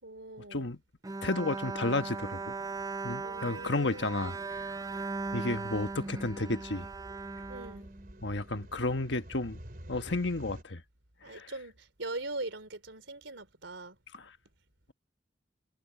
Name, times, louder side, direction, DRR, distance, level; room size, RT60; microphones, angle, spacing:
voice 1, 0.0-0.7 3.2-4.2 7.5-7.9 11.2-14.0, right 2 dB, 85° right, 3.7 m, -41 dB
Bowed string instrument, 1.0-8.4, right 4 dB, 20° right, 0.6 m, -38 dB
voice 2, 1.2-2.5 3.0-4.4 4.7-4.8 5.3-6.9 8.2-9.6 9.9-10.8 11.3-11.5 14.1-14.3, left 2 dB, 70° left, 1.3 m, -32 dB
sound 1, 2.3-10.6, equal, 50° right, 4.0 m, -51 dB
head